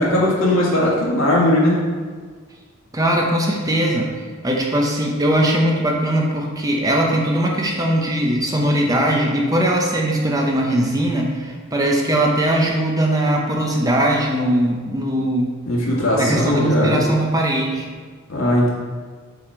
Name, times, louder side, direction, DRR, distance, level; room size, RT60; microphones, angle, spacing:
voice 1, 0.0-1.8 15.7-17.1 18.3-18.7, left 1 dB, 70° left, -4 dB, 1.9 m, -18 dB
voice 2, 2.9-4.1 4.4-15.5 16.2-17.9, right 1 dB, 15° right, 0 dB, 0.8 m, -20 dB
7.9 x 4.2 x 4.5 m, 1.5 s
head